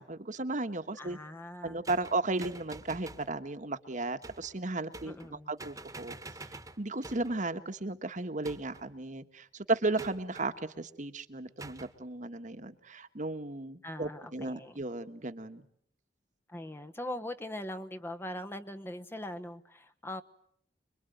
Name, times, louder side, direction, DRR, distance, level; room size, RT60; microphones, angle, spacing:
voice 1, 0.0-1.2 1.6-6.1 6.8-15.6, right 2 dB, 45° right, 8 dB, 1.5 m, -35 dB
voice 2, 1.0-1.8 5.0-5.5 13.8-14.7 16.5-20.2, left 1 dB, 15° left, 7 dB, 1.1 m, -41 dB
sound 1, 1.8-3.3 4.2-4.5 4.9-5.3 5.6-7.4 8.4-8.9 10.0-10.5 11.6-11.9, right 2 dB, 20° right, 1.5 m, -47 dB
26.0 x 23.0 x 9.3 m, 0.68 s
head